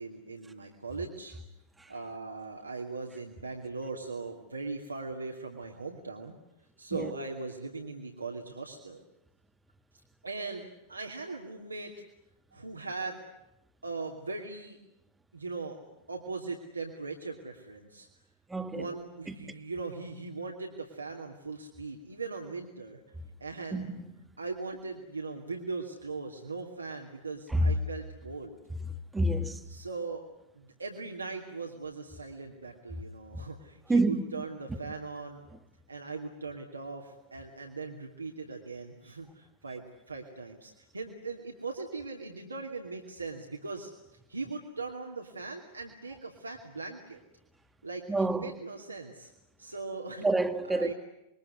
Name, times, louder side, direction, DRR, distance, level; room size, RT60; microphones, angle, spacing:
voice 1, 0.0-1.3 1.9-6.3 6.8-9.0 10.2-11.9 12.5-13.2 13.8-14.8 15.3-15.8 16.1-18.1 18.7-23.0 23.4-23.9 24.4-28.6 29.7-30.2 30.5-35.5 35.9-43.9 44.3-47.2 47.8-48.1 48.4-49.3 49.6-50.3 50.7-50.9, right 3 dB, 80° right, 2.7 m, -39 dB
voice 2, 18.5-18.9 19.3-19.5 23.7-23.9 27.5-27.7 29.1-29.6 33.9-34.4 48.1-48.5 50.2-50.9, right 2 dB, 10° right, 1.8 m, -28 dB
27.5 x 22.5 x 9.6 m
figure-of-eight pair, 90°, 0 cm